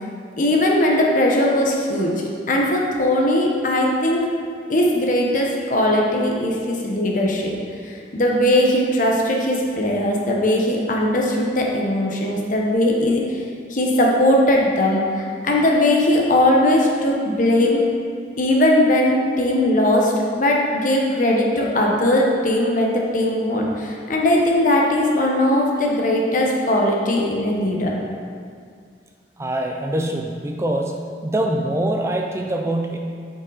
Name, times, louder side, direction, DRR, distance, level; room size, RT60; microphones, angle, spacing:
voice 1, 0.4-2.1 2.5-4.2 4.7-7.6 7.8-13.4 13.7-17.8 18.4-28.0, left 1 dB, 50° left, -1 dB, 1.0 m, -19 dB
voice 2, 29.4-33.0, right 1 dB, 15° right, 2 dB, 0.4 m, -24 dB
8.2 x 5.3 x 4.0 m, 2.2 s
head